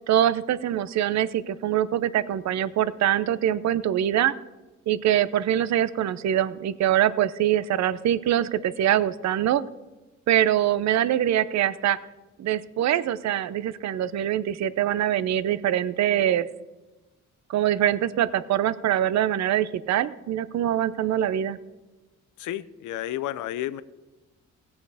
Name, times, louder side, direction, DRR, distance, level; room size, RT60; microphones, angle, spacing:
voice 1, 0.1-4.3 4.9-9.6 10.3-12.0 12.4-16.5 17.5-21.6, right 11 dB, 65° right, 17 dB, 0.6 m, -24 dB
voice 2, 22.4-23.8, left 13 dB, 80° left, 16 dB, 0.6 m, -31 dB
16.5 x 7.2 x 4.9 m, 1.1 s
cardioid pair, 90°, 30 cm